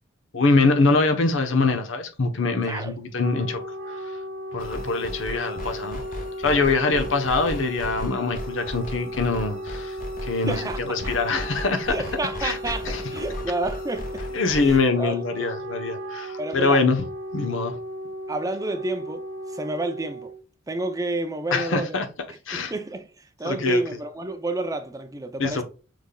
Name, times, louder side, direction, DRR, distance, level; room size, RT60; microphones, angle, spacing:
voice 1, 0.3-3.6 4.5-6.0 6.4-10.0 10.2-11.9 12.4-12.6 12.9-13.0 14.3-17.0 17.3-17.8 21.5-22.1 22.5-22.7 23.4-23.8 25.4-25.6, left 3 dB, 75° left, 1.0 m, -23 dB
Wind instrument woodwind instrument, 2.9-20.4, equal, 75° right, 0.7 m, -35 dB
sound 1, 4.6-14.9, left 1 dB, 45° left, 1.3 m, -36 dB
voice 2, 10.5-11.1 11.9-14.2 14.6-15.5 16.4-16.9 18.3-20.3 20.7-21.9 22.3-25.6, right 2 dB, 20° right, 0.5 m, -30 dB
6.3 x 3.4 x 2.3 m
head